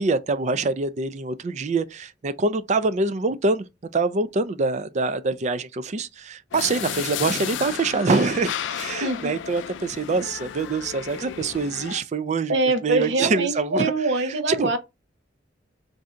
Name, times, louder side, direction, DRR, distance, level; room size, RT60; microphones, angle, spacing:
voice 1, 0.0-3.7 3.9-12.5 12.8-13.9 14.5-14.7, right 3 dB, 40° right, 0.4 m, -25 dB
sound 1, 6.5-12.0, left 9 dB, 80° left, 0.3 m, -33 dB
voice 2, 9.0-9.3 12.5-14.8, right 2 dB, 70° right, 0.7 m, -24 dB
3.6 x 2.7 x 4.3 m
head